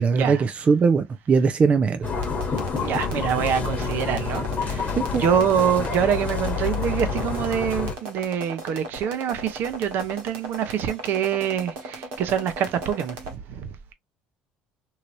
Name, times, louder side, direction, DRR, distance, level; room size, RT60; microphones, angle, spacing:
voice 1, 0.0-2.1 5.0-5.2, right 5 dB, 35° right, 0.4 m, -20 dB
sound 1, 2.0-8.0, left 5 dB, 40° left, 1.1 m, -28 dB
sound 2, 2.1-13.3, right 2 dB, 80° right, 1.3 m, -37 dB
voice 2, 2.8-4.9 5.1-13.2 13.5-13.7, right 8 dB, 65° right, 0.7 m, -25 dB
3.2 x 2.8 x 2.5 m
supercardioid pair, 85°, 4 cm